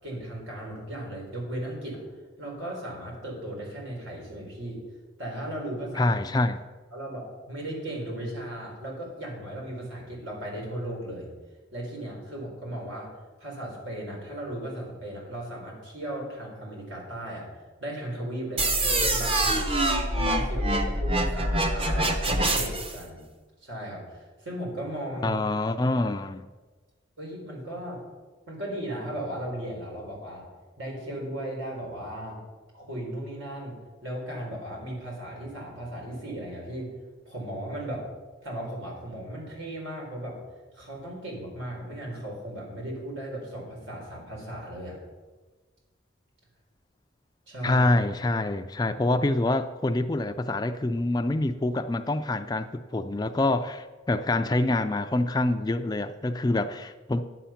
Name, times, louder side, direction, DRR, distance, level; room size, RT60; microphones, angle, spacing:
voice 1, 0.0-2.0 2.4-4.8 5.2-6.1 6.9-11.3 11.7-13.1 13.4-17.4 17.8-19.7 20.1-23.2 23.6-25.4 26.0-26.1 27.2-28.0 28.5-30.4 30.8-32.4 32.7-33.7 34.0-36.9 37.2-38.1 38.4-40.4 40.7-45.0 47.5-47.9, right 1 dB, 80° right, -1 dB, 3.8 m, -36 dB
voice 2, 6.0-6.6 25.2-26.5 47.6-57.2, left 2 dB, 20° left, 10 dB, 0.3 m, -26 dB
sound 1, 18.6-23.0, right 1 dB, 30° right, 0.9 m, -25 dB
10.5 x 7.8 x 5.7 m, 1.3 s
head